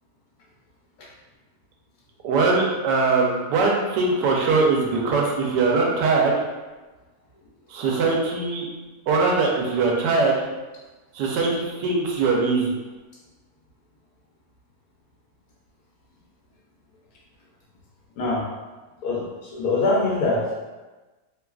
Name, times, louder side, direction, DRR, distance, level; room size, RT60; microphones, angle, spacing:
voice 1, 2.2-6.4 7.7-8.7 9.1-10.4 11.1-12.7, right 3 dB, 80° right, -1 dB, 1.2 m, -21 dB
voice 2, 19.5-20.7, left 2 dB, 70° left, -4 dB, 1.1 m, -23 dB
3.1 x 2.3 x 2.3 m, 1.2 s
omnidirectional pair, 1.9 m